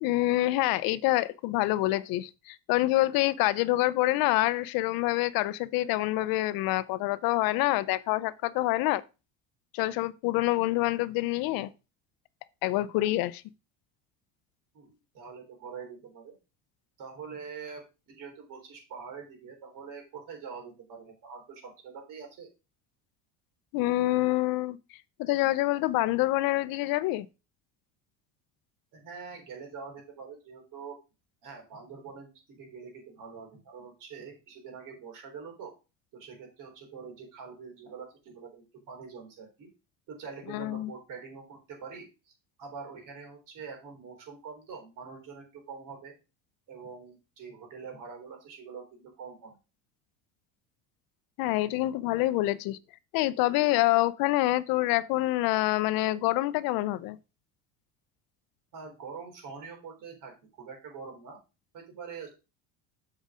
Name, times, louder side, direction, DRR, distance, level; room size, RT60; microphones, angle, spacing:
voice 1, 0.0-9.0 9.7-11.7 12.6-13.4 23.7-24.8 25.2-27.3 40.5-40.9 51.4-52.8 53.1-57.2, left 17 dB, 70° left, 0.7 m, -26 dB
voice 2, 14.7-16.3 17.0-22.5 28.9-31.0 31.4-35.7 36.1-39.7 40.1-42.3 42.6-46.1 46.7-49.5 58.7-61.4 61.7-62.3, right 5 dB, 55° right, 3.9 m, -44 dB
7.4 x 5.0 x 5.0 m
cardioid pair, 120°, 37 cm